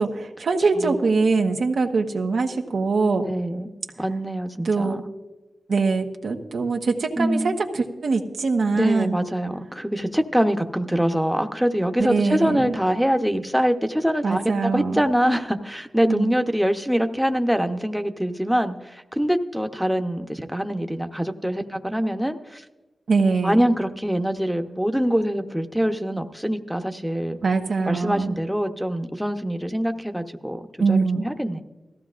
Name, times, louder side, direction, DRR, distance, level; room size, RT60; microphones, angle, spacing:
voice 1, 0.0-3.3 4.6-5.0 5.7-9.2 12.0-12.7 14.2-15.0 16.1-16.3 23.1-23.6 27.4-28.3 30.8-31.3, right 4 dB, 80° right, 3 dB, 1.2 m, -23 dB
voice 2, 3.2-5.1 7.2-7.5 8.7-22.6 23.4-27.4 27.9-30.6 30.9-31.6, equal, ahead, 6 dB, 0.9 m, -24 dB
18.0 x 14.5 x 2.5 m, 1.2 s
wide cardioid pair, 75°, 0 cm